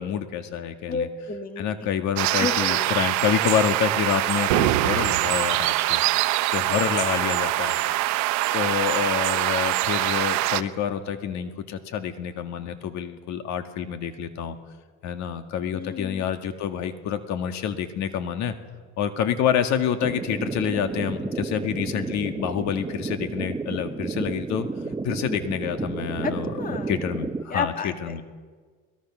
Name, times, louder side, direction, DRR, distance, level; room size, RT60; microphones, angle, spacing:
voice 1, 0.0-1.1 1.6-6.0 6.5-7.8 8.5-14.6 15.0-18.5 19.0-24.7 25.0-26.5 26.9-28.2, left 8 dB, 60° left, 7 dB, 1.9 m, -27 dB
voice 2, 0.9-1.7 2.3-2.9 15.7-16.2 26.2-26.9 27.5-28.2, left 5 dB, 25° left, 7 dB, 1.9 m, -31 dB
sound 1, 2.2-10.6, right 17 dB, 65° right, 1.0 m, -24 dB
sound 2, 4.5-5.5, right 12 dB, 80° right, 1.3 m, -24 dB
sound 3, 20.0-27.4, right 3 dB, 15° right, 1.0 m, -32 dB
22.0 x 21.0 x 6.3 m, 1.5 s
supercardioid pair, 105°, 31 cm